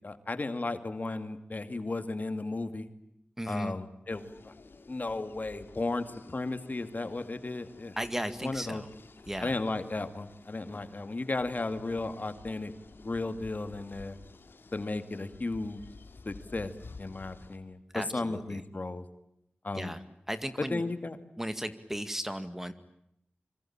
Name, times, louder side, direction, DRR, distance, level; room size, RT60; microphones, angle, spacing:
voice 1, 0.0-2.9 3.5-4.5 4.9-7.9 8.4-8.8 9.4-12.7 13.0-14.2 14.7-15.8 16.2-16.7 17.0-19.0 19.6-19.9 20.6-21.2, left 2 dB, 45° left, 10 dB, 2.4 m, -34 dB
voice 2, 3.4-3.7 8.0-8.9 9.3-9.5 17.9-18.6 19.8-20.0 20.3-20.8 21.4-22.7, equal, 10° right, 11 dB, 2.1 m, -35 dB
sound 1, 4.1-17.6, left 3 dB, 75° left, 2.8 m, -52 dB
25.5 x 25.5 x 8.9 m, 0.78 s
cardioid pair, 55°, 4 cm